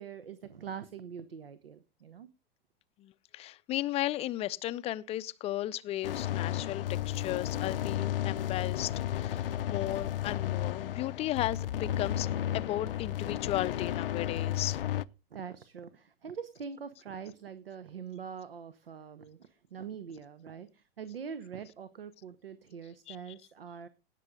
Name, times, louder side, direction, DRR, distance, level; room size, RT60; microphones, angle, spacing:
voice 1, 0.0-2.3 15.3-23.9, right 7 dB, 75° right, 1.0 m, -44 dB
voice 2, 3.0-12.3 12.5-14.8 23.1-23.2, left 14 dB, 20° left, 0.5 m, -35 dB
sound 1, 6.0-15.0, left 12 dB, 70° left, 0.6 m, -33 dB
18.0 x 6.7 x 3.6 m
figure-of-eight pair, 100°, 29 cm